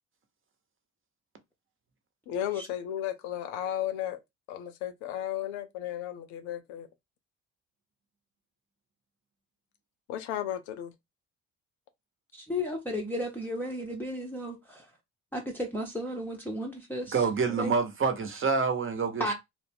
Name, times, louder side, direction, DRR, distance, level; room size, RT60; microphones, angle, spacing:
voice 1, 2.3-4.2 4.5-6.9 10.1-10.9, left 11 dB, 80° left, 0.6 m, -34 dB
voice 2, 12.3-14.9 15.3-17.2 17.6-17.7 19.2-19.3, equal, 5° left, 0.7 m, -34 dB
voice 3, 17.1-19.3, right 5 dB, 35° right, 0.9 m, -27 dB
2.4 x 2.1 x 3.4 m
hypercardioid pair, 55°, 37 cm